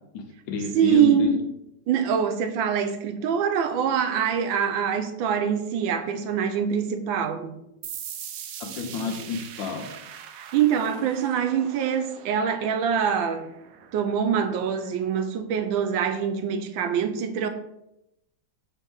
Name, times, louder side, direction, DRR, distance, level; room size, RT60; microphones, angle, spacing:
voice 1, 0.1-1.3 8.6-9.9, left 4 dB, 90° left, 4 dB, 1.6 m, -30 dB
voice 2, 0.7-1.5 1.9-7.6 10.4-13.4 13.9-17.5, right 7 dB, 90° right, 8 dB, 1.4 m, -24 dB
sound 1, 7.8-15.2, right 9 dB, 70° right, 0.8 m, -42 dB
4.6 x 3.8 x 5.4 m, 0.86 s
omnidirectional pair, 2.0 m